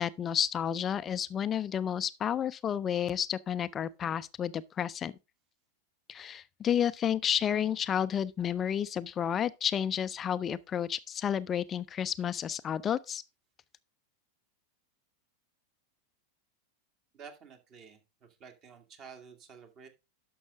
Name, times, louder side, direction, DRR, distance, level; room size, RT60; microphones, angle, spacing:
voice 1, 0.0-5.1 6.1-13.2, left 9 dB, 25° left, 0.4 m, -31 dB
voice 2, 17.1-18.0 18.4-19.9, right 6 dB, 35° right, 2.0 m, -50 dB
11.5 x 6.2 x 3.5 m
figure-of-eight pair, 90°, 0 cm